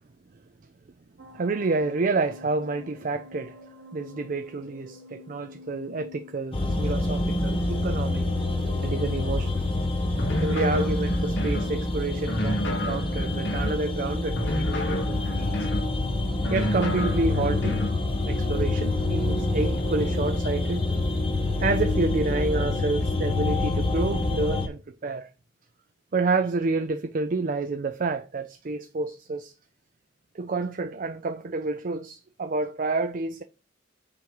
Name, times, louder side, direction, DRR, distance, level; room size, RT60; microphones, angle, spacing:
sound 1, 1.2-20.2, left 3 dB, 60° right, 1.0 m, -48 dB
voice 1, 1.3-3.6 3.9-8.3 8.8-9.6 10.4-15.7 16.5-17.8 18.3-20.9 21.6-25.3 26.1-29.5 30.3-33.4, right 3 dB, 45° right, 0.4 m, -29 dB
sound 2, 6.5-24.7, left 2 dB, 30° left, 1.6 m, -27 dB
sound 3, 10.1-11.7 12.2-13.8 14.3-15.9 16.4-18.0, left 1 dB, 65° left, 1.4 m, -30 dB
7.4 x 3.1 x 5.3 m
head